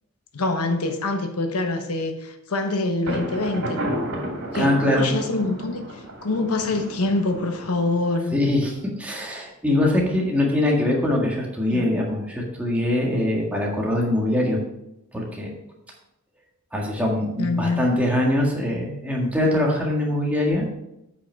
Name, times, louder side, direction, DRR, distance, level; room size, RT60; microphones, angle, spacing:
voice 1, 0.3-3.8 4.5-5.8 6.2-8.3 11.7-11.9 17.4-17.9, left 2 dB, 85° left, 6 dB, 1.1 m, -25 dB
Thunder, 3.1-8.7, equal, 80° right, 2.5 m, -32 dB
voice 2, 4.5-5.1 8.3-14.6 15.1-15.5 16.7-20.7, left 1 dB, 5° right, -3 dB, 1.7 m, -23 dB
8.5 x 5.7 x 4.5 m, 0.86 s
head